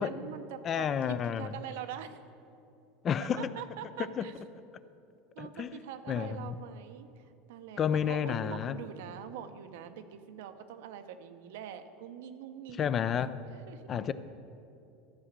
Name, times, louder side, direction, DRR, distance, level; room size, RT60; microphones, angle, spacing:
voice 1, 0.0-2.2 3.4-4.3 5.3-7.1 7.5-12.9 13.7-13.8, right 9 dB, 80° right, 0.7 m, -44 dB
voice 2, 0.6-1.5 3.0-3.5 4.2-4.3 5.4-5.7 6.1-6.5 7.8-8.8 12.8-13.4 13.9-14.1, left 8 dB, 30° left, 0.4 m, -30 dB
13.0 x 4.9 x 7.3 m
supercardioid pair, 140°, 0 cm